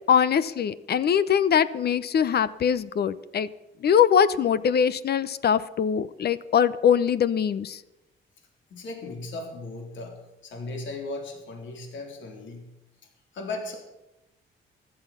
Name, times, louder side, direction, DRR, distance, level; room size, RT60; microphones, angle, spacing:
voice 1, 0.1-3.5 3.8-7.8, left 8 dB, 55° left, 16 dB, 0.8 m, -22 dB
voice 2, 8.7-12.6 13.3-13.8, left 2 dB, 70° left, 2 dB, 3.4 m, -36 dB
15.0 x 12.0 x 5.8 m, 0.95 s
cardioid pair, 90°, 20 cm